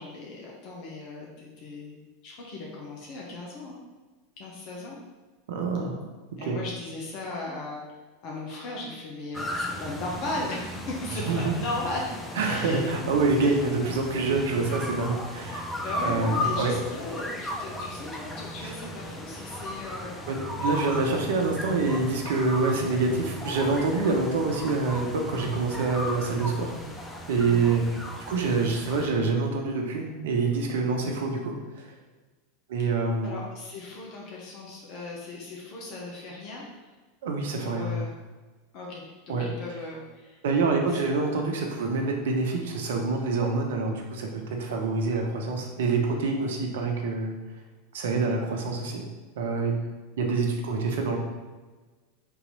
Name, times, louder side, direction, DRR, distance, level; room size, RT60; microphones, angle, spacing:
voice 1, 0.0-3.8 4.4-5.0 6.4-7.8 8.2-12.0 12.4-12.9 13.4-13.6 15.8-20.2 27.4-27.8 33.2-36.6 37.6-38.1 38.7-40.4 40.7-41.1 41.4-41.5, left 2 dB, 50° left, -3 dB, 1.0 m, -37 dB
voice 2, 5.5-6.0 6.4-6.6 11.3-11.6 12.4-15.7 16.0-16.7 18.6-18.7 20.3-26.7 27.3-27.8 28.2-31.5 32.7-33.3 37.2-38.0 39.3-39.4 40.4-47.3 47.9-49.0 49.4-49.7 50.2-51.2, right 3 dB, 70° right, 2 dB, 0.7 m, -26 dB
sound 1, 9.3-29.1, left 1 dB, 10° left, 0.6 m, -36 dB
3.9 x 3.0 x 4.0 m, 1.3 s
hypercardioid pair, 95°, 0 cm